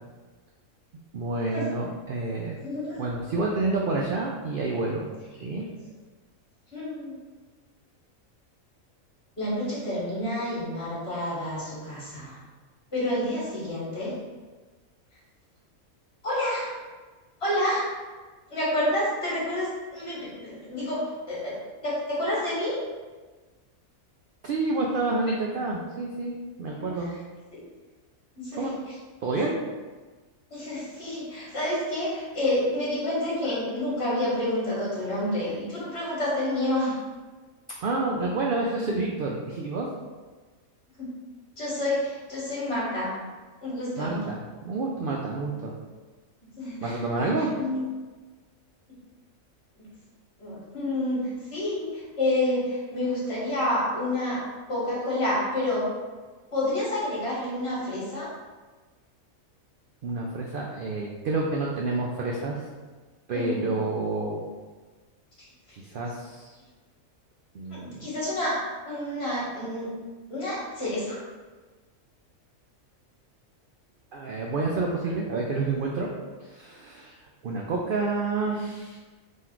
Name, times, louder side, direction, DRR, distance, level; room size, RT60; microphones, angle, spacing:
voice 1, 1.1-2.6 3.0-5.1 5.4-5.7 24.4-27.1 28.5-28.7 29.2-29.6 37.8-39.9 44.0-45.7 46.8-47.5 60.0-62.6 63.3-64.4 65.8-66.6 67.5-68.0 74.1-76.1 76.4-77.2 77.4-79.0, right 3 dB, 65° right, -1 dB, 0.5 m, -29 dB
voice 2, 2.6-3.0 6.7-7.1 9.4-12.4 12.9-14.2 16.2-16.8 17.4-17.9 18.5-21.6 21.8-22.8 27.0-27.1 27.5-27.6 28.4-28.9 29.4-29.5 30.5-37.0 41.0-41.1 41.6-43.2 43.6-44.2 46.6-47.3 47.6-47.8 50.4-54.4 54.7-55.9 56.5-58.3 63.3-63.9 65.4-65.5 67.7-68.6 68.8-69.9 70.3-71.2, left 1 dB, 45° left, -7 dB, 1.9 m, -29 dB
3.9 x 3.1 x 4.4 m, 1.3 s
omnidirectional pair, 1.5 m